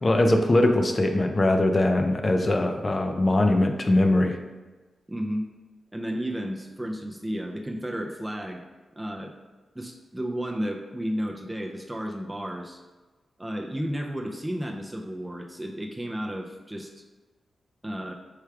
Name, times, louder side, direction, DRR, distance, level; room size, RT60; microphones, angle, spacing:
voice 1, 0.0-4.4, left 1 dB, 35° left, 5 dB, 0.5 m, -21 dB
voice 2, 5.1-5.5 5.9-8.6 9.0-9.3 9.7-12.8 13.4-16.9 17.8-18.1, equal, 10° right, 1 dB, 0.5 m, -32 dB
4.7 x 2.2 x 4.6 m, 1.2 s
cardioid pair, 65°, 0 cm